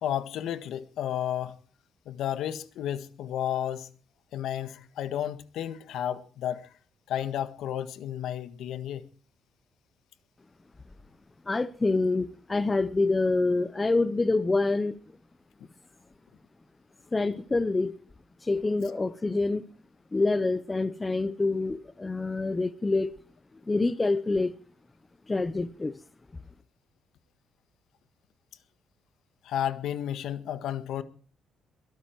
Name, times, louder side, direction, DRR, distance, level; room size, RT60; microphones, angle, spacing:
voice 1, 0.0-1.6 2.0-3.9 4.3-6.7 7.1-9.1 29.4-31.0, left 10 dB, 65° left, 1.6 m, -32 dB
voice 2, 11.5-15.0 17.1-17.9 18.4-19.6 20.1-23.1 23.7-24.5 25.3-26.0, left 3 dB, 15° left, 0.7 m, -26 dB
22.0 x 12.0 x 4.6 m
cardioid pair, 175°, 0 cm